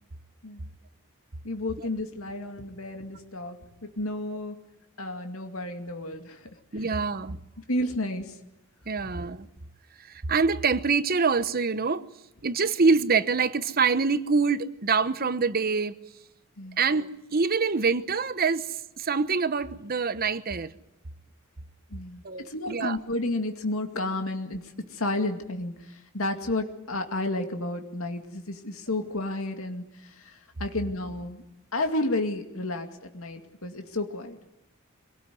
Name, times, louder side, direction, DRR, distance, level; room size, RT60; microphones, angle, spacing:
voice 1, 1.4-4.6 5.0-6.4 6.8-6.9 7.7-8.4 16.6-16.8 21.9-31.4 31.7-34.4, left 2 dB, 80° left, 2.3 m, -32 dB
voice 2, 6.7-7.4 8.9-9.5 10.1-12.1 12.4-16.0 16.8-20.7 22.2-23.0, right 4 dB, 45° right, 1.0 m, -25 dB
25.0 x 18.5 x 9.4 m
head